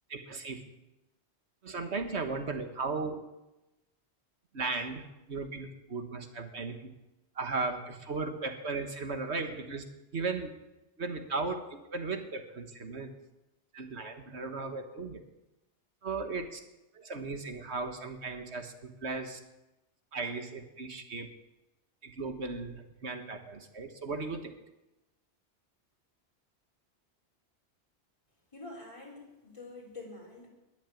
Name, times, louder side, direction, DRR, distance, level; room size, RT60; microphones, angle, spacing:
voice 1, 0.1-0.6 1.6-3.2 4.5-6.9 7.3-9.8 10.1-10.5 11.0-13.1 13.7-15.2 16.0-16.6 16.9-19.4 20.1-21.3 22.0-24.5, right 3 dB, 75° right, 6 dB, 1.8 m, -36 dB
voice 2, 28.5-30.5, left 2 dB, 25° left, -2 dB, 4.0 m, -46 dB
21.0 x 7.3 x 8.5 m, 0.99 s
omnidirectional pair, 1.2 m